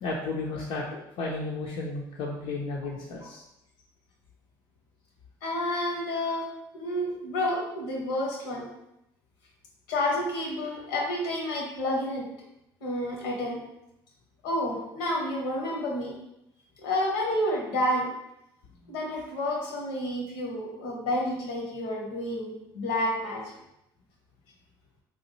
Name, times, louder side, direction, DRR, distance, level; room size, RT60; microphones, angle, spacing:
voice 1, 0.0-3.4, left 3 dB, 60° left, -3 dB, 0.5 m, -33 dB
voice 2, 5.4-6.5 6.7-8.7 9.9-12.3 12.8-13.6 14.4-16.1 16.8-18.1 18.9-23.5, left 1 dB, 80° left, -1 dB, 0.8 m, -30 dB
2.9 x 2.2 x 3.0 m, 0.84 s
hypercardioid pair, 65°, 11 cm